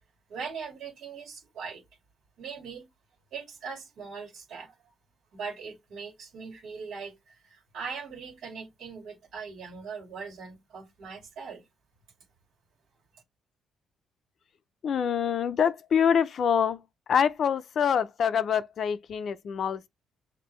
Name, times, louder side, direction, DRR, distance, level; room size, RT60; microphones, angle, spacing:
voice 1, 0.3-1.8 2.4-2.9 3.3-4.7 5.3-11.6 13.1-13.2, right 5 dB, 80° right, 2.0 m, -40 dB
voice 2, 14.8-16.8 17.1-19.9, left 7 dB, 60° left, 0.5 m, -25 dB
6.0 x 2.6 x 3.1 m
cardioid pair, 90°, 0 cm